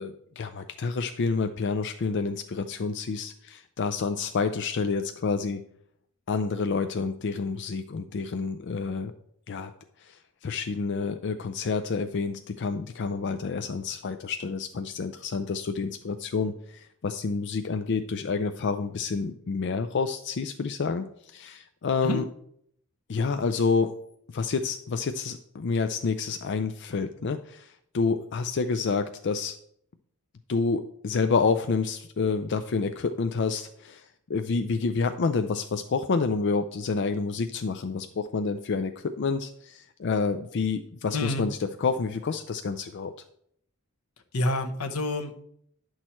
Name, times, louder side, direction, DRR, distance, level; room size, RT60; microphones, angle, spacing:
voice 1, 0.0-5.6 6.3-9.1 9.5-9.7 10.0-21.0 21.3-22.2 23.1-23.9 24.3-27.7 27.9-29.6 30.5-34.0 34.3-38.9 39.2-43.1, left 4 dB, 55° left, 9 dB, 0.4 m, -28 dB
voice 2, 41.1-41.5 44.3-45.5, left 2 dB, 85° left, 6 dB, 1.1 m, -28 dB
10.5 x 6.3 x 4.4 m, 0.69 s
head